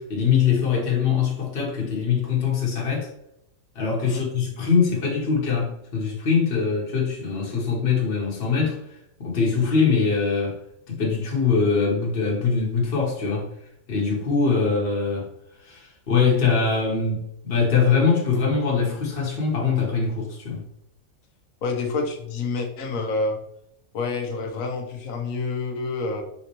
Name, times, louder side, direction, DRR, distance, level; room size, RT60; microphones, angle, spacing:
voice 1, 0.0-3.1 3.7-8.8 9.2-10.6 10.9-13.5 13.9-15.3 15.6-20.6, left 5 dB, 45° left, 1.2 m, -22 dB
voice 2, 21.6-23.4 23.9-26.2, left 3 dB, 75° left, 1.2 m, -28 dB
4.3 x 3.8 x 3.0 m
omnidirectional pair, 1.4 m